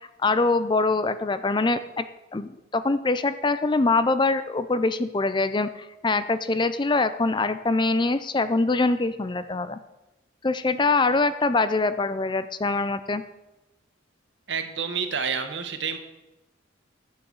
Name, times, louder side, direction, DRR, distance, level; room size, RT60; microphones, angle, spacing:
voice 1, 0.2-2.0 2.3-9.8 10.4-13.2, left 3 dB, 25° left, 12 dB, 0.5 m, -24 dB
voice 2, 14.5-16.0, right 6 dB, 65° right, 7 dB, 1.3 m, -29 dB
11.5 x 8.6 x 6.5 m, 1.0 s
head